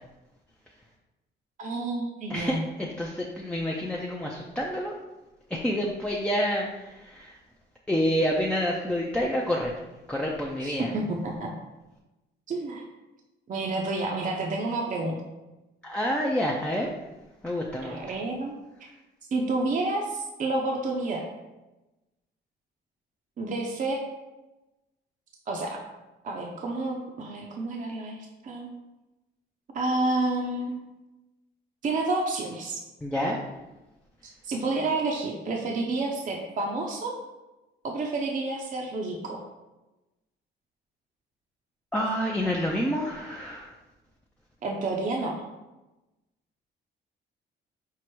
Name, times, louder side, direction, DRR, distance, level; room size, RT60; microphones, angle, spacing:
voice 1, 1.6-2.6 10.6-11.5 12.5-12.8 13.5-15.2 17.8-18.5 19.3-21.3 23.4-24.0 25.5-25.8 26.2-28.2 28.4-28.7 29.7-30.7 31.8-32.8 34.2-37.1 37.8-39.4 44.6-45.4, right 2 dB, 40° right, 0 dB, 0.6 m, -29 dB
voice 2, 2.3-4.9 5.5-7.3 7.9-9.7 10.1-10.9 15.8-16.9 17.4-18.0 33.0-33.4 41.9-43.7, equal, 5° left, -3 dB, 0.5 m, -28 dB
4.7 x 2.0 x 4.5 m, 1.0 s
cardioid pair, 90°, 20 cm